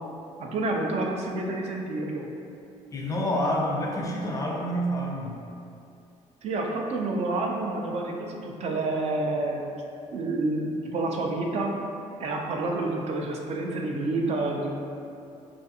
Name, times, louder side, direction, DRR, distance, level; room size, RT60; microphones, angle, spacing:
voice 1, 0.4-2.3 6.4-9.6 10.1-11.7 12.2-14.7, right 2 dB, 55° right, 1 dB, 0.4 m, -28 dB
voice 2, 2.9-5.3, equal, 25° left, -1 dB, 0.4 m, -28 dB
2.4 x 2.4 x 2.6 m, 2.6 s
cardioid pair, 100°, 14 cm